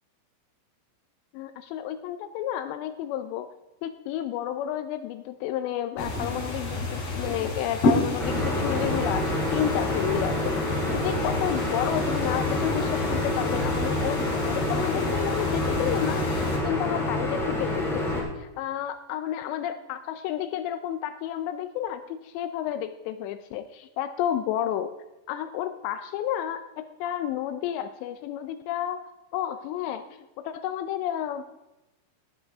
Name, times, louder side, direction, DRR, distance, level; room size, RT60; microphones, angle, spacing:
voice 1, 1.3-3.5 3.8-24.9 25.3-30.1 30.4-31.5, left 11 dB, 85° left, 10 dB, 2.5 m, -31 dB
sound 1, 6.0-16.6, left 2 dB, 35° left, 4.1 m, -30 dB
sound 2, 8.2-18.2, left 2 dB, ahead, 2.6 m, -28 dB
18.0 x 10.0 x 3.5 m, 0.98 s
omnidirectional pair, 5.5 m